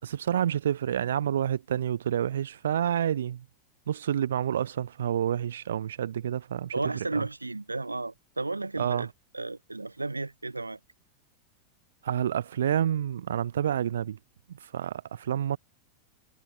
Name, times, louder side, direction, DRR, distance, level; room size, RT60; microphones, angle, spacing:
voice 1, 0.0-3.5 3.9-6.7 7.1-7.3 8.8-9.1 12.0-14.2 14.5-15.6, right 10 dB, 65° right, 7.0 m, -28 dB
voice 2, 6.7-9.1 9.3-10.8, right 3 dB, 80° right, 7.0 m, -33 dB
figure-of-eight pair, 90°, 0 cm